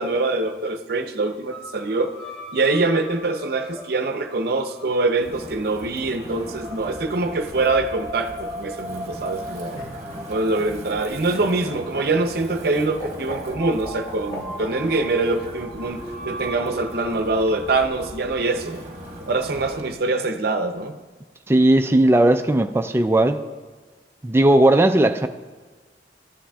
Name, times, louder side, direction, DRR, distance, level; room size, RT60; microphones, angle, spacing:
voice 1, 0.0-2.1 2.5-9.8 10.3-18.8 19.2-21.0, right 3 dB, 60° right, 6 dB, 0.6 m, -24 dB
sound 1, 1.5-19.6, equal, 5° left, 1.6 m, -39 dB
Wind, 5.2-20.0, right 1 dB, 40° right, 1.0 m, -40 dB
Laughter, 9.3-15.0 16.3-17.0, right 2 dB, 30° left, 2.1 m, -38 dB
voice 2, 21.5-23.4 24.2-25.3, right 1 dB, 15° right, 7 dB, 0.3 m, -17 dB
13.5 x 9.9 x 2.3 m, 1.4 s
head